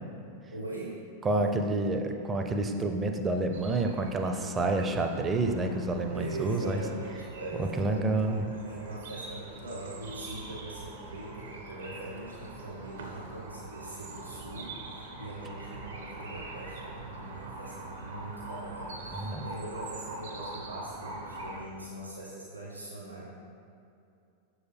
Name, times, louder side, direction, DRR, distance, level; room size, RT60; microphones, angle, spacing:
voice 1, 0.5-1.0 6.1-8.3 8.6-23.2, right 1 dB, 80° right, -6 dB, 1.1 m, -42 dB
voice 2, 1.2-6.8 7.6-8.5 19.1-19.4, right 2 dB, 20° right, 5 dB, 0.4 m, -29 dB
sound 1, 3.5-21.6, right 2 dB, 65° right, 0.6 m, -43 dB
6.4 x 4.7 x 3.4 m, 2.6 s
figure-of-eight pair, 90°, 0 cm